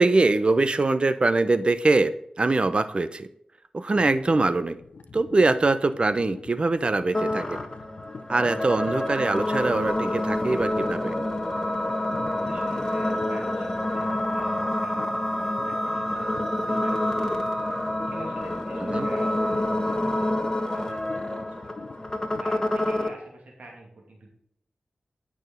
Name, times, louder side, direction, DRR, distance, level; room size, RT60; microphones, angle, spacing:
voice 1, 0.0-2.1 2.4-3.3 3.7-4.8 5.1-7.6 8.3-11.1 18.9-19.1, right 3 dB, 45° right, 12 dB, 0.7 m, -23 dB
sound 1, 3.9-22.4, left 4 dB, 80° left, 0.8 m, -45 dB
sound 2, 7.1-23.1, left 1 dB, 25° left, 1.5 m, -28 dB
voice 2, 12.3-20.4 20.7-21.8 22.4-24.3, right 2 dB, 75° right, -1 dB, 2.6 m, -45 dB
Wind instrument woodwind instrument, 14.4-18.0, right 1 dB, 5° right, 1.6 m, -34 dB
9.1 x 6.2 x 5.2 m, 0.71 s
cardioid pair, 55°, 2 cm